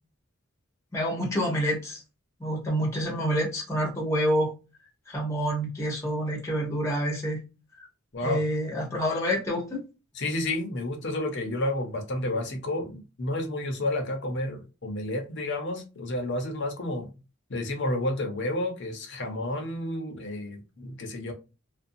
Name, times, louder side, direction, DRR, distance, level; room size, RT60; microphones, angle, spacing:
voice 1, 0.9-2.0 2.4-4.5 5.1-7.4 7.8-7.9 8.2-9.8, equal, 15° left, 0.8 m, -27 dB
voice 2, 10.2-17.1 17.5-21.3, left 1 dB, 60° left, 0.8 m, -31 dB
2.5 x 2.3 x 2.6 m
head